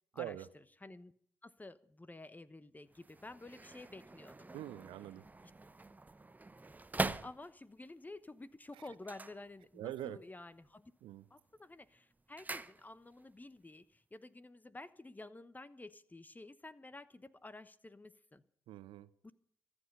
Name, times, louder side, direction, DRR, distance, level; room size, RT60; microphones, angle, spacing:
voice 1, 0.2-0.5 4.5-5.2 9.7-10.2 11.0-11.2 18.7-19.1, right 13 dB, 65° right, 15 dB, 0.8 m, -44 dB
voice 2, 0.8-1.1 1.4-4.5 7.2-10.9 11.3-18.4 19.2-19.3, left 2 dB, 15° left, 16 dB, 1.1 m, -51 dB
sound 1, 2.9-7.9 8.9-10.1 10.4-10.9 11.2-13.3 13.6-13.7, right 3 dB, 15° right, 0.8 m, -43 dB
24.0 x 8.1 x 5.5 m, 0.64 s
figure-of-eight pair, 40°, 10 cm